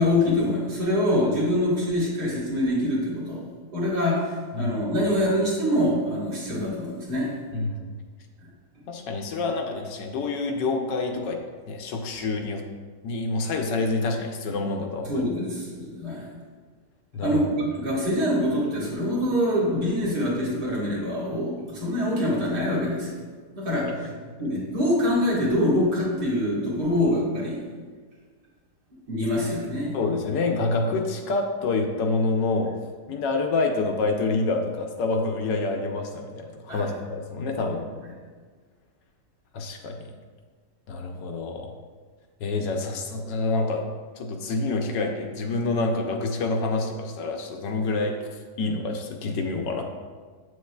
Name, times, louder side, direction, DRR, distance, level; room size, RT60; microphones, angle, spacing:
voice 1, 0.0-3.4 3.7-7.3 15.1-16.3 17.2-23.2 23.5-23.9 24.4-27.6 29.1-29.9 36.7-36.9, left 1 dB, 60° right, -5 dB, 2.0 m, -25 dB
voice 2, 7.5-7.9 8.9-11.4 11.7-12.6 13.0-15.2 17.1-17.4 23.8-23.9 29.9-32.7 33.1-37.9 39.5-40.0 40.9-41.7 42.4-43.8 44.2-48.2 48.6-49.8, left 3 dB, 75° left, 3 dB, 1.2 m, -27 dB
7.8 x 6.3 x 2.2 m, 1.5 s
omnidirectional pair, 2.0 m